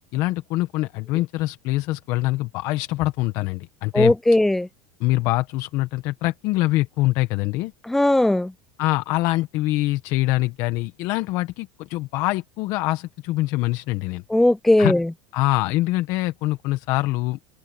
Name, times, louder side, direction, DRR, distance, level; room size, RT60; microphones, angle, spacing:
voice 1, 0.0-4.1 5.0-7.7 8.8-14.2 14.8-14.9 15.3-17.4, left 18 dB, 55° left, 1.1 m, -24 dB
voice 2, 3.9-4.7 7.9-8.5 14.3-15.0, left 1 dB, 5° left, 0.3 m, -18 dB
supercardioid pair, 125°, 7 cm